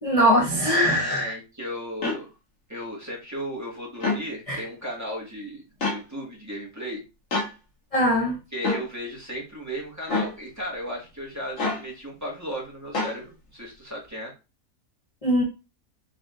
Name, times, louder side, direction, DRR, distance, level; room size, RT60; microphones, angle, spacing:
voice 1, 0.0-1.3 4.5-4.6 7.9-8.4 15.2-15.4, equal, 30° left, 0.7 m, -21 dB
voice 2, 0.9-2.3 2.7-7.0 8.5-14.3, equal, 10° right, 1.2 m, -35 dB
sound 1, 2.0-2.2 3.9-4.2 5.8-6.0 7.3-7.5 8.6-8.8 10.1-10.3 11.6-11.8 12.9-13.2, left 3 dB, 60° left, 1.6 m, -26 dB
4.9 x 3.4 x 2.4 m
omnidirectional pair, 1.6 m